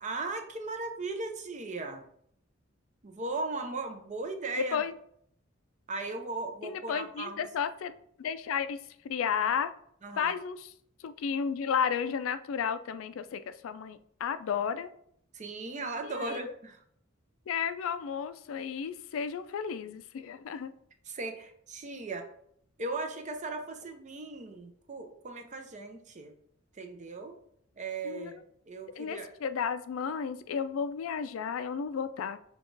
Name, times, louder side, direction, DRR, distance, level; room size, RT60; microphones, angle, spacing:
voice 1, 0.0-2.0 3.0-4.8 5.9-7.4 10.0-10.3 15.3-16.8 21.1-22.2 22.8-26.3 26.8-27.3 27.8-29.3, right 3 dB, 35° right, 6 dB, 0.6 m, -37 dB
voice 2, 4.6-4.9 6.6-7.9 8.2-9.7 10.2-10.7 11.0-14.9 16.0-16.5 17.5-20.7 28.0-28.4 29.0-32.4, left 7 dB, 80° left, 12 dB, 0.3 m, -33 dB
5.7 x 2.3 x 3.8 m, 0.68 s
head